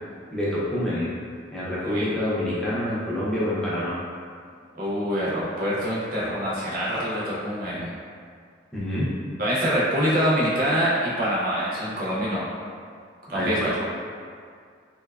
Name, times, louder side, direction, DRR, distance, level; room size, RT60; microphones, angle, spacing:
voice 1, 0.3-1.1 1.5-4.0 8.7-9.1 13.3-13.7, left 1 dB, 5° left, -9 dB, 0.4 m, -27 dB
voice 2, 4.7-7.9 9.4-12.5 13.3-13.8, equal, 45° right, -7 dB, 0.6 m, -25 dB
2.6 x 2.2 x 2.3 m, 2.2 s
head